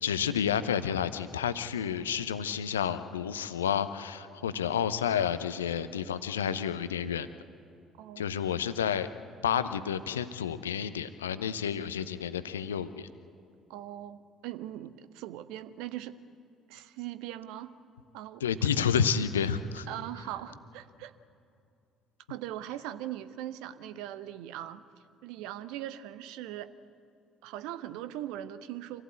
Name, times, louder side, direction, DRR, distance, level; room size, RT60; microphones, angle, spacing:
voice 1, 0.0-7.3 8.2-9.1 9.4-13.1 18.4-19.9, left 8 dB, 75° left, 13 dB, 0.7 m, -30 dB
voice 2, 8.0-8.3 13.7-16.2 16.7-17.7 18.1-18.4 19.9-21.1 22.3-24.8 25.2-26.7 27.4-29.0, right 12 dB, 60° right, 13 dB, 0.8 m, -40 dB
26.0 x 16.0 x 8.3 m, 2.5 s
figure-of-eight pair, 50°, 0 cm